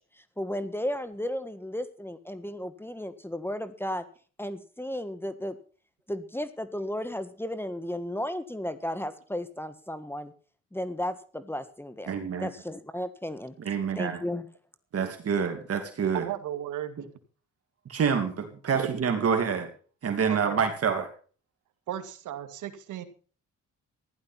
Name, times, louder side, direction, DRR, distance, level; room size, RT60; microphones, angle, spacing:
voice 1, 0.2-4.0 4.4-5.6 6.1-10.3 10.7-14.5, left 1 dB, 5° left, 12 dB, 1.5 m, -34 dB
voice 2, 12.1-12.5 13.6-14.2 14.9-16.3 17.9-19.7 20.0-21.1, right 6 dB, 50° right, 6 dB, 2.7 m, -27 dB
voice 3, 16.1-17.0 20.3-20.6 21.9-23.1, right 11 dB, 80° right, 9 dB, 2.2 m, -35 dB
15.5 x 11.5 x 5.8 m, 0.41 s
cardioid pair, 90°, 30 cm